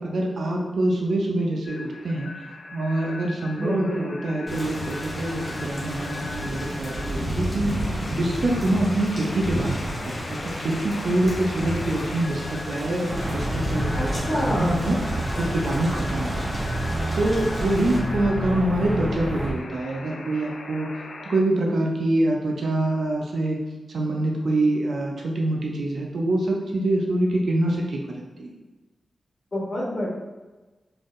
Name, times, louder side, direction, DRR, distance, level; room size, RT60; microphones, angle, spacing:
voice 1, 0.0-2.3 2.7-7.7 8.1-9.8 10.3-15.0 15.4-16.5 17.1-20.9 21.3-23.6 23.9-28.5, right 1 dB, 70° right, -1 dB, 0.6 m, -25 dB
sound 1, 1.6-21.4, left 3 dB, 60° left, 0.3 m, -41 dB
voice 2, 3.6-4.1 14.0-14.9 29.5-30.1, equal, 35° left, -6 dB, 1.3 m, -27 dB
Thunder / Rain, 4.5-18.0, equal, 20° left, 1.0 m, -32 dB
sound 2, 13.1-19.5, right 1 dB, 40° right, 1.2 m, -29 dB
3.9 x 3.4 x 2.6 m, 1.2 s
wide cardioid pair, 155°, 0 cm